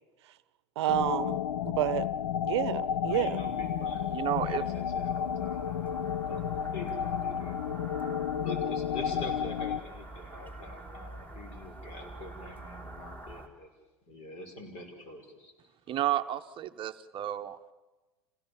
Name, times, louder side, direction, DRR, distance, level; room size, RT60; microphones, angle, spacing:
voice 1, 0.8-2.1 2.4-3.4, right 13 dB, 70° right, 18 dB, 0.8 m, -30 dB
sound 1, 0.9-9.8, left 8 dB, 75° left, 0.6 m, -32 dB
voice 2, 3.1-6.0 6.3-6.5 6.7-7.6 8.3-13.7 14.1-15.5, left 2 dB, 45° left, 5 dB, 6.0 m, -44 dB
sound 2, 3.1-13.5, right 2 dB, 10° left, 3.3 m, -47 dB
voice 3, 4.1-4.6 15.9-17.7, right 12 dB, 35° right, 8 dB, 0.9 m, -32 dB
27.0 x 17.0 x 7.3 m, 1.2 s
hypercardioid pair, 95°, 15 cm